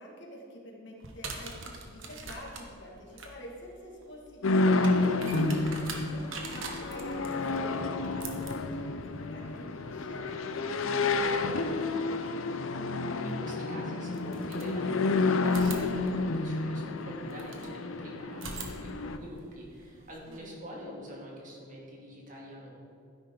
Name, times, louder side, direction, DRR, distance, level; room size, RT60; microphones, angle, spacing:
voice 1, 0.0-12.7 20.3-20.6, left 1 dB, 55° left, -1 dB, 2.0 m, -46 dB
sound 1, 1.0-11.8 13.3-13.4 14.1-15.1 15.4-17.7 18.3-20.4, right 4 dB, 70° right, 1.4 m, -45 dB
sound 2, 4.4-19.2, left 3 dB, 75° left, 0.6 m, -30 dB
voice 2, 12.9-22.8, equal, 40° right, -2 dB, 2.2 m, -45 dB
12.5 x 10.5 x 3.8 m, 2.5 s
head